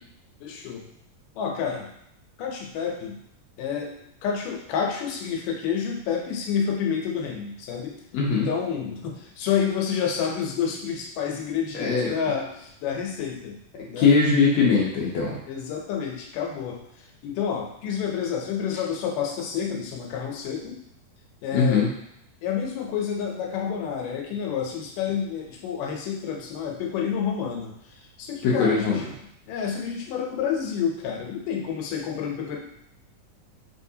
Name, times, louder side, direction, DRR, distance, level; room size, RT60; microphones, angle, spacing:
voice 1, 0.4-0.8 1.4-1.9 2.4-3.2 3.6-3.9 4.2-8.0 8.3-13.6 13.9-14.1 15.4-20.8 21.4-21.9 22.4-29.0 29.5-32.6, left 7 dB, 90° left, 0 dB, 2.3 m, -29 dB
voice 2, 8.1-8.5 11.8-12.1 14.0-15.4 21.5-21.9 28.4-29.0, left 5 dB, 70° left, -4 dB, 1.7 m, -21 dB
4.5 x 3.3 x 2.7 m, 0.74 s
omnidirectional pair, 3.7 m